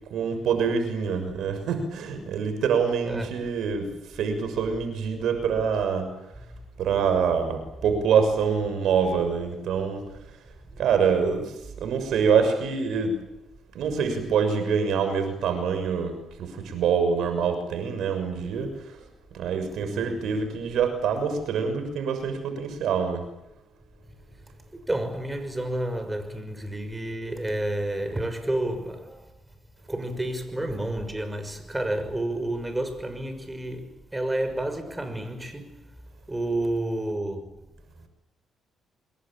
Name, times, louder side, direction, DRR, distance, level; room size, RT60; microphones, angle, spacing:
voice 1, 0.1-6.1 6.8-10.0 10.8-13.2 13.7-19.0 19.3-23.3, right 6 dB, 75° right, 6.5 m, -25 dB
voice 2, 19.9-20.3 24.7-29.2 29.9-33.9 34.1-35.8 36.3-37.6, right 1 dB, 15° right, 6.2 m, -30 dB
27.5 x 22.0 x 8.9 m
cardioid pair, 90°, 0 cm